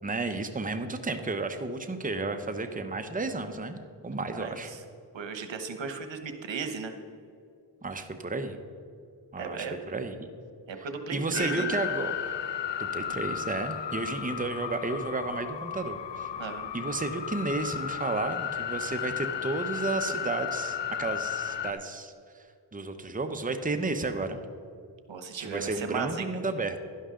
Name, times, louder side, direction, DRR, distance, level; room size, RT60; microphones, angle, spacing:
voice 1, 0.0-4.7 7.8-8.6 9.3-10.2 10.8-12.1 12.8-16.3 16.7-22.4 22.7-24.4 25.4-26.8, right 3 dB, 20° right, 7 dB, 0.9 m, -32 dB
voice 2, 4.3-4.8 5.1-6.9 9.4-9.8 10.7-11.8 16.4-16.7 25.1-26.3, right 5 dB, 80° right, 7 dB, 1.1 m, -36 dB
sound 1, 11.3-21.7, left 9 dB, 70° left, 0.7 m, -34 dB
11.5 x 11.0 x 3.8 m, 2.4 s
cardioid pair, 60°, 44 cm